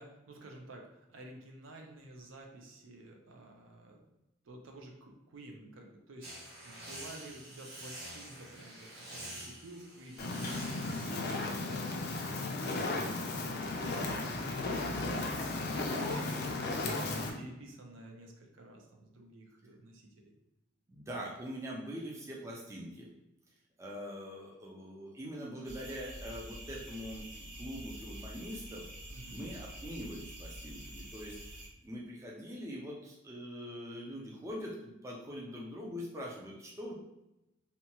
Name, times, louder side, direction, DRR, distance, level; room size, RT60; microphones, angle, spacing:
voice 1, 0.0-4.0 4.4-15.4 15.7-20.3 29.1-29.5, right 1 dB, 70° right, 1 dB, 0.5 m, -51 dB
sound 1, 6.2-11.2, right 1 dB, 50° right, 0.9 m, -47 dB
Fire, 10.2-17.3, left 2 dB, 50° left, 0.4 m, -35 dB
voice 2, 20.9-23.1 23.8-28.9 29.3-37.0, equal, 15° right, -3 dB, 0.4 m, -43 dB
sound 2, 25.6-31.7, right 1 dB, 35° right, 1.2 m, -47 dB
2.8 x 2.2 x 2.8 m, 0.92 s
head